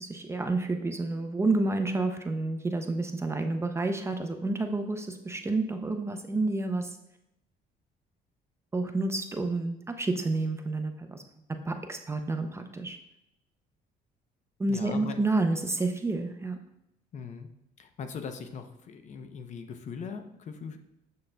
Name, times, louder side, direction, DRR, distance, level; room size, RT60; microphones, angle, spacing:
voice 1, 0.0-7.0 8.7-11.2 11.5-13.0 14.6-16.6, right 2 dB, 15° right, 6 dB, 0.5 m, -29 dB
voice 2, 14.7-15.2 17.1-17.5 17.8-20.8, left 5 dB, 45° left, 7 dB, 0.6 m, -40 dB
7.2 x 6.6 x 2.2 m, 0.82 s
cardioid pair, 110°, 17 cm